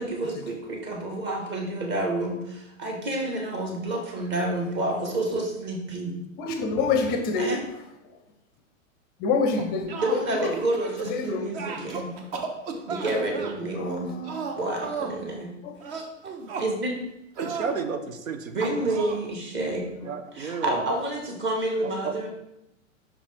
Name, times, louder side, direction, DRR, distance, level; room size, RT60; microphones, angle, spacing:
voice 1, 0.0-6.1 7.4-7.6 10.0-12.2 12.9-14.2 14.6-15.5 15.9-16.0 16.6-17.0 18.5-20.0 20.3-22.3, right 2 dB, 30° right, 1.4 m, -29 dB
voice 2, 6.4-7.6 9.2-10.6 11.1-11.9 13.7-14.5 15.6-15.9 19.7-20.1, left 4 dB, 25° left, 0.5 m, -28 dB
sound 1, 9.6-11.2 11.5-13.5 14.2-15.2 15.8-16.7 17.4-17.8 18.6-19.2, right 4 dB, 45° right, 1.0 m, -34 dB
voice 3, 17.4-18.9 20.0-20.9 21.8-22.1, right 5 dB, 90° right, 0.7 m, -32 dB
5.7 x 4.8 x 3.4 m
hypercardioid pair, 110°, 39 cm